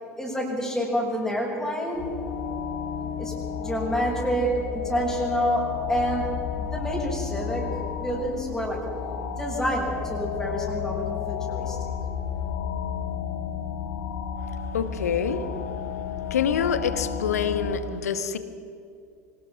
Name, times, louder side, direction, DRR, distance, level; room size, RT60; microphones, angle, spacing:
voice 1, 0.2-2.1 3.0-3.3 3.6-5.6 5.9-6.3 6.5-7.6 8.0-8.8 9.4-11.9, equal, 5° left, -4 dB, 6.7 m, -28 dB
sound 1, 1.9-17.8, left 7 dB, 50° left, 2.0 m, -32 dB
voice 2, 14.7-15.4 16.3-18.4, left 7 dB, 70° left, 12 dB, 1.4 m, -26 dB
25.0 x 18.5 x 6.1 m, 2.4 s
figure-of-eight pair, 75°, 9 cm